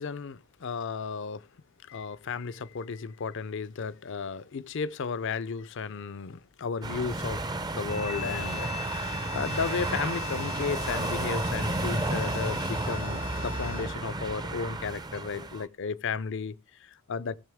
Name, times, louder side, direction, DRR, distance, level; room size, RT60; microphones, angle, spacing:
voice 1, 0.0-1.5 1.8-7.4 7.7-17.4, left 5 dB, 55° left, 0.5 m, -34 dB
sound 1, 6.8-15.7, right 2 dB, 20° right, 0.5 m, -32 dB
sound 2, 7.9-14.1, left 10 dB, 90° left, 1.2 m, -41 dB
16.0 x 6.8 x 3.5 m
head